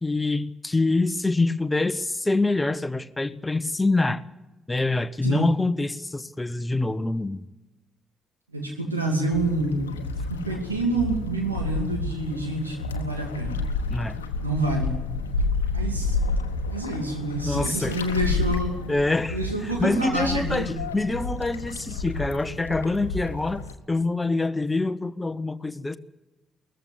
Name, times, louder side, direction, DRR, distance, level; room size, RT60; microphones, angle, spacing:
voice 1, 0.0-4.2 4.7-7.4 13.9-14.2 17.5-18.0 18.9-23.6 23.9-26.0, left 2 dB, 15° left, 14 dB, 1.0 m, -25 dB
voice 2, 5.2-5.5 8.5-10.0 10.3-13.7 14.4-15.1 15.7-16.3 16.7-18.8 19.3-20.7, right 2 dB, 90° right, 2 dB, 2.6 m, -28 dB
sound 1, 9.3-23.7, left 3 dB, 80° left, 1.1 m, -30 dB
20.0 x 14.5 x 9.7 m, 1.1 s
figure-of-eight pair, 40°, 0 cm